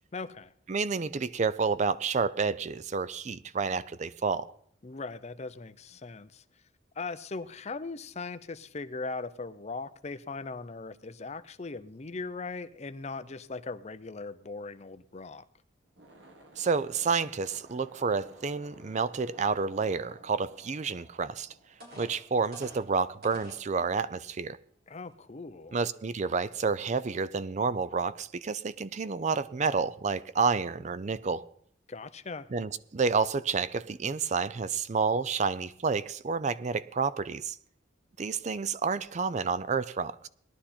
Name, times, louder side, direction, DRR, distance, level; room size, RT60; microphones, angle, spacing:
voice 1, 0.1-0.5 4.8-6.4 7.0-15.4 24.9-25.8 31.9-32.5, left 3 dB, 35° left, 0.6 m, -39 dB
voice 2, 0.7-4.5 16.6-21.5 22.0-24.6 25.7-31.5 32.5-37.6 38.2-40.3, right 5 dB, 40° right, 0.4 m, -29 dB
Explode II, 15.8-22.4, right 1 dB, 75° right, 1.8 m, -55 dB
sound 1, 21.3-21.4 21.8-23.7 24.3-24.4 24.9-25.1, equal, 55° right, 4.5 m, -48 dB
18.5 x 11.5 x 4.3 m
head